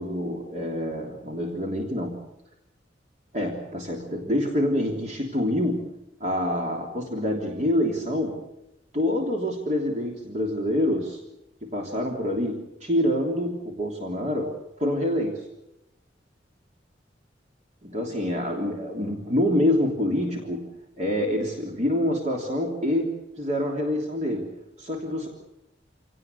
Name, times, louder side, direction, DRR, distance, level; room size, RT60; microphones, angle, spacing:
voice 1, 0.0-2.2 3.3-8.5 8.9-11.2 11.6-15.5 17.8-20.7 21.0-25.3, left 1 dB, 40° right, 0 dB, 3.3 m, -26 dB
27.5 x 18.0 x 8.1 m, 0.89 s
head